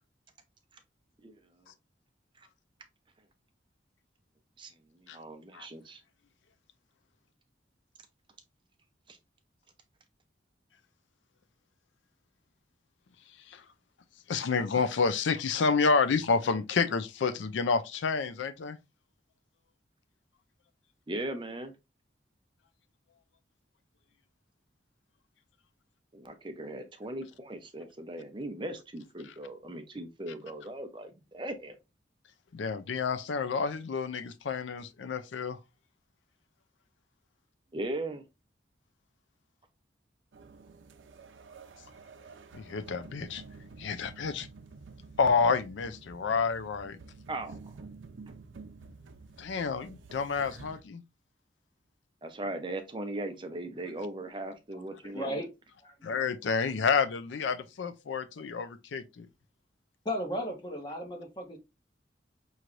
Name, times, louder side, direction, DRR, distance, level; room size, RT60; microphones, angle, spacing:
voice 1, 4.6-6.0 9.1-9.2 21.1-21.7 26.1-31.8 37.7-38.2 47.3-47.6 52.2-55.4, right 1 dB, 25° right, 0.6 m, -38 dB
voice 2, 14.3-18.8 32.5-35.6 42.5-43.4 43.8-44.5 45.2-47.0 49.4-51.0 56.0-59.3, left 5 dB, 80° left, 0.4 m, -29 dB
sound 1, 40.3-50.8, right 4 dB, 85° right, 0.6 m, -50 dB
voice 3, 54.7-55.5 55.8-55.9 60.0-61.6, equal, 25° left, 1.1 m, -35 dB
5.6 x 3.1 x 2.5 m
head